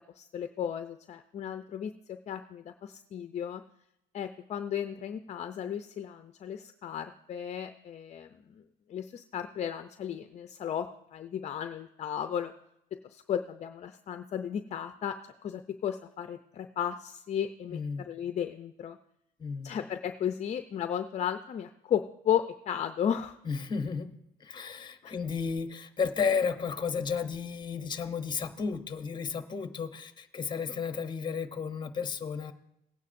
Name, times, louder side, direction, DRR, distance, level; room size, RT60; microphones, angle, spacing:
voice 1, 0.2-3.6 4.1-8.6 8.9-12.5 13.0-17.8 18.1-19.0 19.6-23.4 25.0-25.1, left 9 dB, 40° left, 9 dB, 0.5 m, -34 dB
voice 2, 17.7-18.1 19.4-19.7 23.4-32.5, left 5 dB, 25° left, 9 dB, 0.9 m, -33 dB
18.5 x 9.4 x 2.6 m, 0.81 s
cardioid pair, 110°, 17 cm